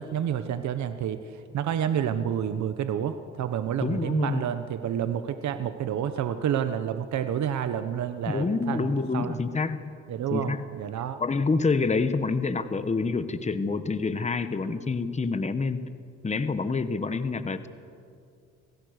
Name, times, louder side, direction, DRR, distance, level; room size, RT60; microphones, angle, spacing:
voice 1, 0.0-9.4 10.1-11.2, right 9 dB, 70° right, 9 dB, 1.1 m, -29 dB
voice 2, 3.8-4.4 8.3-10.0 10.3-10.6 11.2-15.9 16.2-17.7, left 4 dB, 25° left, 11 dB, 1.1 m, -27 dB
26.0 x 17.0 x 6.6 m, 2.3 s
cardioid pair, 90°, 30 cm